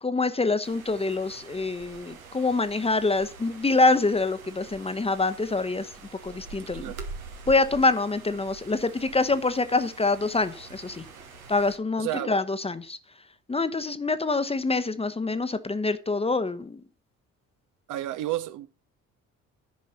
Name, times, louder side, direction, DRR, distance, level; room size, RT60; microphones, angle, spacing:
voice 1, 0.0-5.9 6.2-6.9 7.5-11.0 11.5-13.0 13.5-16.8, left 3 dB, 15° left, 0.9 m, -25 dB
sound 1, 0.6-11.8, right 4 dB, 80° right, 1.2 m, -45 dB
voice 2, 12.0-12.3 17.9-18.7, right 14 dB, 50° right, 0.7 m, -31 dB
10.5 x 5.3 x 5.7 m
figure-of-eight pair, 50°, 41 cm